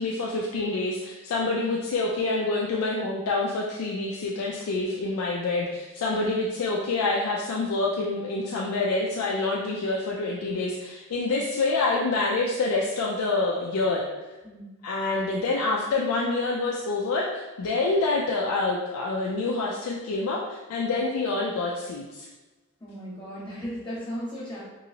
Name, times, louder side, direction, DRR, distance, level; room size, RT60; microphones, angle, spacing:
voice 1, 0.0-14.0 14.8-22.3, left 3 dB, 90° left, -2 dB, 0.4 m, -27 dB
voice 2, 22.8-24.6, equal, 20° left, -8 dB, 1.0 m, -36 dB
3.0 x 2.7 x 2.8 m, 1.2 s
head